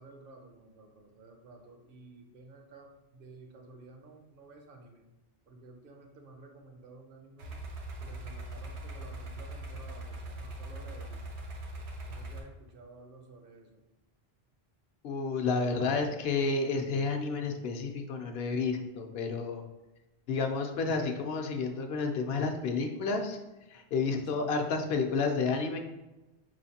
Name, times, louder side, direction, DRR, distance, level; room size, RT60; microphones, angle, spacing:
voice 1, 0.0-5.0 5.5-7.6 8.0-11.3 12.1-13.8 24.3-24.5, right 2 dB, 60° right, 3 dB, 0.8 m, -53 dB
sound 1, 7.4-12.4, right 1 dB, 90° right, 0.9 m, -41 dB
voice 2, 15.0-19.6 20.3-23.4 23.7-25.8, left 4 dB, 70° left, 5 dB, 0.8 m, -30 dB
4.9 x 3.2 x 2.7 m, 1.0 s
omnidirectional pair, 1.1 m